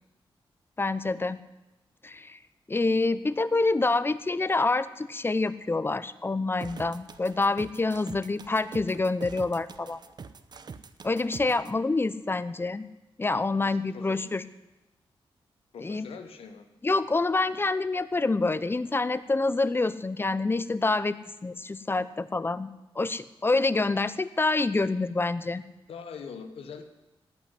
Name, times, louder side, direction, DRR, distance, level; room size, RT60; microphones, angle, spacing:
voice 1, 0.8-1.4 2.0-2.4 2.7-10.0 11.0-12.9 13.2-14.4 15.8-16.1 16.8-21.2 21.4-22.7 23.0-25.6, left 3 dB, 25° left, 15 dB, 0.6 m, -27 dB
sound 1, 6.6-11.7, right 5 dB, 50° right, 0.8 m, -44 dB
voice 2, 13.6-14.3 15.7-16.7 25.9-26.8, left 6 dB, 90° left, 7 dB, 1.2 m, -43 dB
17.0 x 5.9 x 9.8 m, 1.0 s
wide cardioid pair, 95°, 10 cm